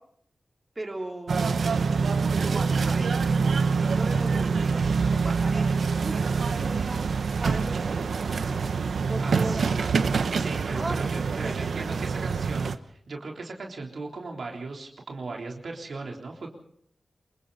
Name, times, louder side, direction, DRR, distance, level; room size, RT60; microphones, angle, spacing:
voice 1, 0.8-1.7 2.4-3.1 3.7-8.7 9.1-9.8 10.7-11.0 11.4-12.1, right 2 dB, 25° right, 1 dB, 3.6 m, -38 dB
sound 1, 1.3-12.8, right 5 dB, 85° right, 1.0 m, -25 dB
voice 2, 9.2-9.7 10.3-16.5, right 3 dB, 70° right, 1 dB, 3.7 m, -37 dB
27.5 x 23.5 x 4.2 m, 0.68 s
wide cardioid pair, 105°, 0 cm